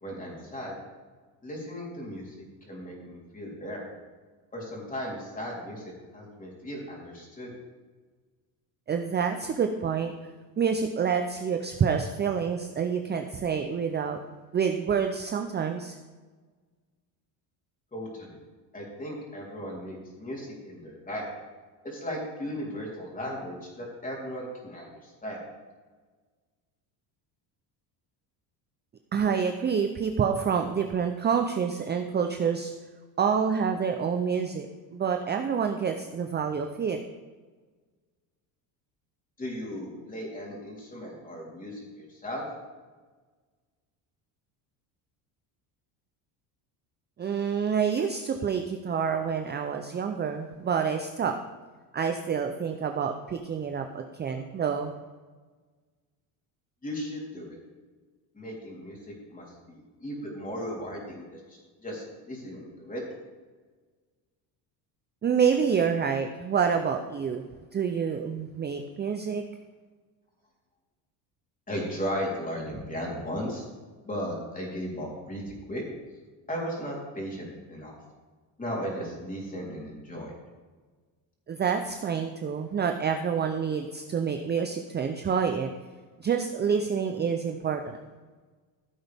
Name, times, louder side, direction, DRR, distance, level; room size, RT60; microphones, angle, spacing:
voice 1, 0.0-0.7 1.4-2.4 2.7-3.9 4.5-7.5 17.9-18.4 18.7-21.3 21.8-25.4 39.4-42.4 56.8-57.6 58.3-63.0 71.7-73.6 74.0-75.4 75.7-75.8 76.5-77.9 78.6-80.3, equal, 20° left, -3 dB, 3.6 m, -36 dB
voice 2, 8.9-10.1 10.6-14.2 14.5-16.0 29.1-32.7 33.2-37.0 47.2-51.4 51.9-54.9 65.2-67.4 67.7-69.4 81.5-85.7 86.2-88.0, right 6 dB, 25° right, 5 dB, 0.5 m, -27 dB
15.0 x 7.9 x 3.5 m, 1.4 s
cardioid pair, 115°, 45 cm